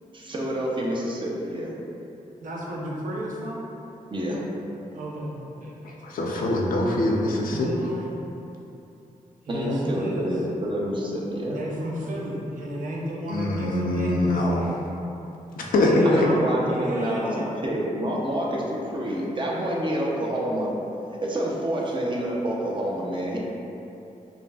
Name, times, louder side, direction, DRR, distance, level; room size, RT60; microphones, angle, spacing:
voice 1, 0.1-1.7 4.1-4.4 9.5-11.6 16.0-17.3 17.6-20.7 21.2-23.4, right 1 dB, 35° right, -3 dB, 0.6 m, -28 dB
voice 2, 2.4-3.6 4.9-5.9 7.5-8.1 9.4-10.4 11.5-14.8 15.8-17.5, equal, 70° right, -4 dB, 0.7 m, -33 dB
voice 3, 5.8-7.7 13.3-14.8 15.6-16.3, left 1 dB, 85° left, -2 dB, 0.5 m, -23 dB
5.0 x 2.5 x 2.3 m, 2.8 s
cardioid pair, 90°, 14 cm